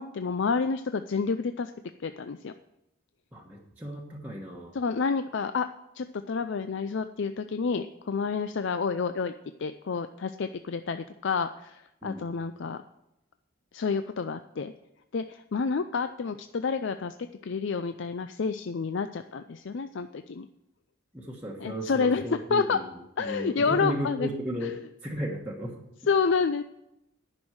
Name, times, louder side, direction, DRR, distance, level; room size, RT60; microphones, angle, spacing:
voice 1, 0.0-1.7 2.0-2.5 4.7-5.7 6.0-9.3 9.6-12.8 13.7-14.7 15.1-17.1 17.4-20.5 21.6-22.8 23.2-24.3 24.6-24.7 26.1-26.6, left 5 dB, 55° left, 9 dB, 0.4 m, -29 dB
voice 2, 3.3-4.8 12.0-12.2 21.1-25.8, equal, 10° right, -3 dB, 1.2 m, -35 dB
10.5 x 6.3 x 7.9 m, 0.86 s
head